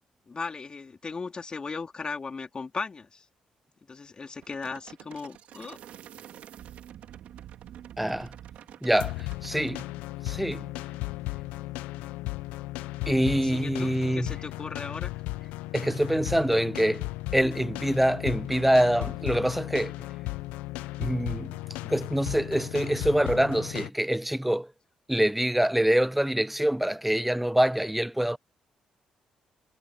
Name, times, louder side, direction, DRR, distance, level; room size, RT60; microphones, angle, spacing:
voice 1, 0.3-3.3 3.9-5.8 13.4-15.2, left 4 dB, 40° left, 3.4 m, -37 dB
sound 1, 4.4-9.9, right 11 dB, 75° right, 3.1 m, -47 dB
voice 2, 8.0-8.3 8.8-9.9 10.2-10.7 13.1-14.3 15.7-19.9 21.0-21.6 21.9-24.7 25.1-28.4, right 1 dB, 5° right, 0.5 m, -25 dB
sound 2, 9.0-23.9, left 19 dB, 90° left, 0.5 m, -35 dB
supercardioid pair, 60°, 2 cm